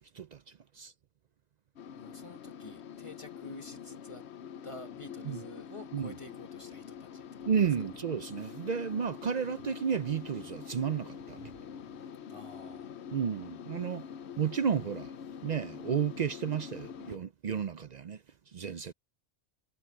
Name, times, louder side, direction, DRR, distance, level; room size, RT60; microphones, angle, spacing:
sound 1, 1.8-17.2, left 7 dB, 80° left, 1.0 m, -45 dB
voice 1, 2.0-4.3 4.6-7.5 12.3-13.0, left 2 dB, 30° left, 1.6 m, -49 dB
voice 2, 7.5-11.5 13.1-14.0 14.4-15.1 15.4-18.2 18.5-18.9, right 7 dB, 55° right, 0.5 m, -32 dB
omnidirectional pair, 1.1 m